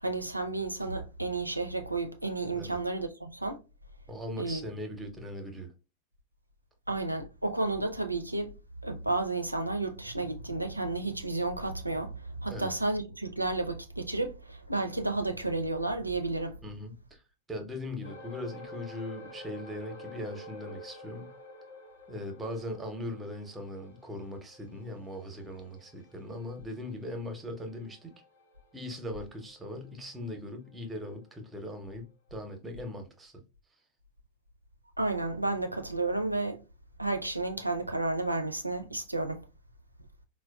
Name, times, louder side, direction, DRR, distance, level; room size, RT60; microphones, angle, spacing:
voice 1, 0.0-3.6 4.4-4.6 6.9-8.5 8.8-16.6 35.0-36.6 37.0-39.4, right 2 dB, 85° right, 0.4 m, -32 dB
voice 2, 4.1-5.7 12.5-12.7 16.6-17.2 17.5-21.3 22.1-28.1 28.7-32.0 32.3-33.3, left 1 dB, 10° right, 0.7 m, -40 dB
sound 1, 18.0-30.7 31.1-31.3 31.8-31.9, left 2 dB, 70° left, 1.1 m, -49 dB
4.3 x 2.2 x 2.2 m
figure-of-eight pair, 90°, 0 cm